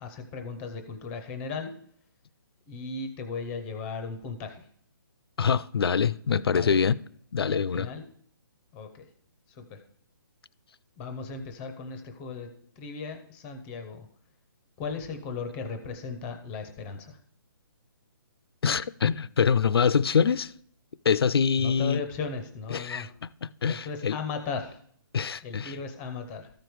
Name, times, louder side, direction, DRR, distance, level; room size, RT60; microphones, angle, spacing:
voice 1, 0.0-1.7 2.7-4.7 6.5-6.9 7.5-8.0 8.7-9.0 9.5-9.8 11.0-12.5 12.8-14.1 14.8-17.2 21.6-23.1 23.7-24.8 25.4-26.5, left 5 dB, 10° left, 0.5 m, -36 dB
voice 2, 5.4-7.0 7.3-7.9 18.6-20.5 21.0-22.0 22.7-24.2 25.1-25.8, left 6 dB, 90° left, 0.5 m, -25 dB
13.5 x 5.1 x 4.6 m
hypercardioid pair, 170°, 12 cm